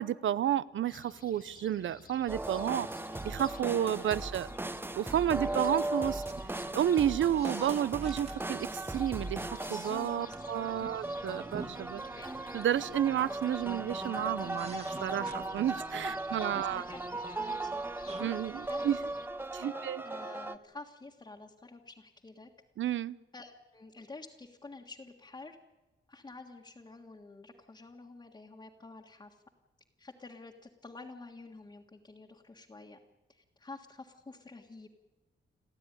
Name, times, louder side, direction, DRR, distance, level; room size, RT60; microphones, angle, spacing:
voice 1, 0.0-2.9 3.2-4.5 4.9-6.2 6.7-12.0 12.5-16.8 18.2-19.0 19.5-20.0 22.8-23.2, right 10 dB, 85° right, 19 dB, 0.7 m, -31 dB
sound 1, 0.9-19.3, left 6 dB, 50° left, 1.1 m, -55 dB
sound 2, 2.3-20.6, right 2 dB, 10° right, 0.7 m, -38 dB
sound 3, 3.9-19.7, right 3 dB, 35° right, 1.9 m, -53 dB
voice 2, 4.5-5.4 9.7-10.4 10.8-11.2 11.9-12.3 16.1-16.2 16.5-17.0 17.4-17.9 18.6-18.8 19.5-22.5 23.3-25.6 26.1-29.4 30.0-33.0 33.3-34.9, left 3 dB, 25° left, 1 dB, 1.6 m, -49 dB
29.5 x 12.0 x 10.0 m, 1.2 s
wide cardioid pair, 150°, 19 cm